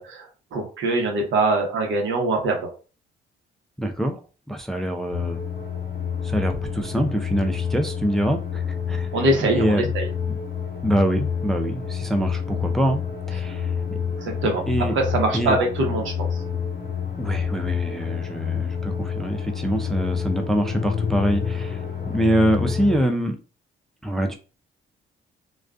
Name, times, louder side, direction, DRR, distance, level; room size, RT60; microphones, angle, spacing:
voice 1, 0.0-2.7 9.1-10.1 14.2-14.6 14.9-16.4, right 2 dB, 75° right, 2 dB, 0.9 m, -23 dB
voice 2, 3.8-4.2 4.5-5.4 6.2-9.1 9.5-9.9 10.8-13.0 13.3-14.0 14.7-15.0 15.3-15.6 17.2-23.4 24.0-24.4, right 1 dB, ahead, 4 dB, 0.3 m, -24 dB
sound 1, 5.1-23.0, left 7 dB, 55° left, 0.8 m, -28 dB
2.4 x 2.3 x 2.3 m, 0.35 s
cardioid pair, 90°, 20 cm